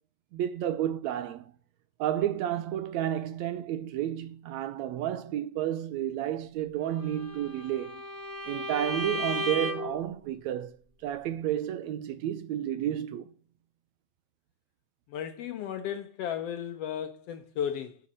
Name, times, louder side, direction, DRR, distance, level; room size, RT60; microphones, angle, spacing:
voice 1, 0.3-1.5 2.0-8.0 8.5-10.8 11.0-13.3, right 11 dB, 75° right, 1.8 m, -31 dB
Bowed string instrument, 7.0-10.0, left 1 dB, 10° right, 1.2 m, -35 dB
voice 2, 15.1-18.0, left 9 dB, 75° left, 1.4 m, -34 dB
8.4 x 7.1 x 7.4 m
omnidirectional pair, 3.5 m